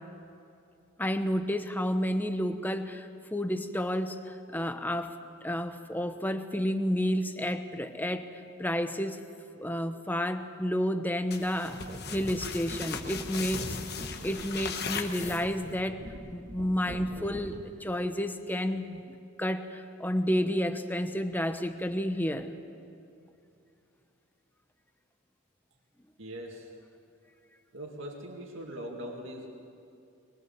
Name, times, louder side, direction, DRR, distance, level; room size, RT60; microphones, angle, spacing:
voice 1, 1.0-4.2 4.5-5.2 5.4-8.3 8.6-9.2 9.6-11.8 12.1-13.8 14.2-16.0 16.3-19.0 19.4-22.5, equal, 10° left, 8 dB, 0.9 m, -30 dB
sound 1, 11.3-15.8, left 5 dB, 50° left, 1.3 m, -38 dB
sound 2, 11.7-17.9, right 1 dB, 35° right, 1.0 m, -45 dB
voice 2, 26.2-26.7 27.7-29.5, equal, 60° right, 0 dB, 2.3 m, -41 dB
22.0 x 21.5 x 7.4 m, 2.6 s
head